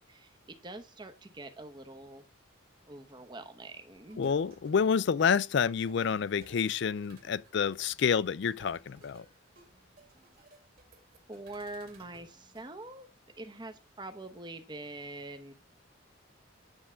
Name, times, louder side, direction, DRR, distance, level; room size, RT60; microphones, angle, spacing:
voice 1, 0.0-2.2 2.9-4.3 11.3-13.1 13.4-15.5, right 2 dB, 20° right, 0.9 m, -44 dB
sound 1, 4.1-12.7, right 2 dB, 45° right, 2.2 m, -59 dB
voice 2, 4.2-9.2, left 6 dB, 55° left, 0.4 m, -28 dB
9.6 x 3.7 x 5.6 m
head